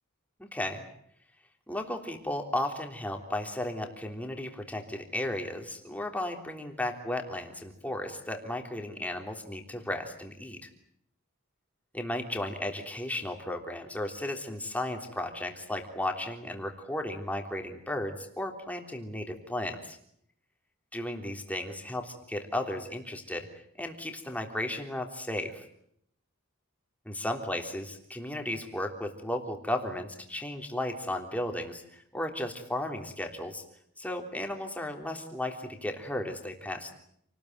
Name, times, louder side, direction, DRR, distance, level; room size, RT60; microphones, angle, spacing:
voice 1, 0.4-0.9 1.7-10.7 11.9-20.0 20.9-23.5 23.8-25.6 27.1-33.6 34.0-36.9, left 1 dB, 5° left, 4 dB, 3.4 m, -35 dB
29.0 x 20.0 x 9.4 m, 0.71 s
head